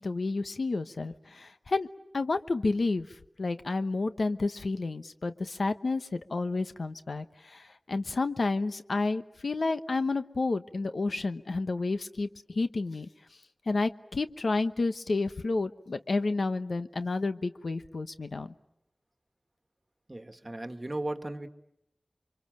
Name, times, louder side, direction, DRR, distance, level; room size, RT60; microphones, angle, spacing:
voice 1, 0.0-1.9 2.1-3.1 3.4-13.1 13.7-18.5, left 3 dB, 80° left, 10 dB, 1.0 m, -30 dB
voice 2, 20.1-21.5, right 1 dB, 30° right, 8 dB, 1.6 m, -36 dB
29.5 x 24.5 x 7.6 m, 0.83 s
wide cardioid pair, 70°, 0 cm